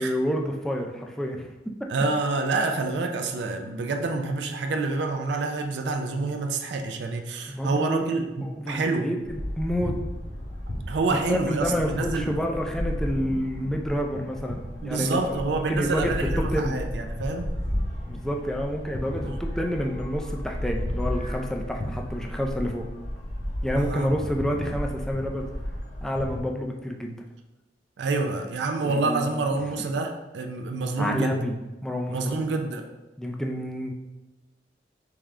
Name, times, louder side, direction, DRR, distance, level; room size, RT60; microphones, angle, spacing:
voice 1, 0.0-1.5 7.5-8.1 8.4-10.0 11.3-16.8 18.1-22.9 23.6-25.5 26.0-27.2 28.8-29.3 31.0-31.5 31.8-32.3 33.2-33.9, equal, 5° left, 1 dB, 0.3 m, -29 dB
voice 2, 1.9-9.1 10.9-12.3 14.8-17.5 19.3-19.4 23.7-24.1 28.0-31.4 32.1-32.9, right 3 dB, 80° right, 5 dB, 0.4 m, -27 dB
sound 1, 9.2-26.4, equal, 40° left, 0.8 m, -33 dB
3.6 x 3.5 x 3.2 m, 1.1 s
head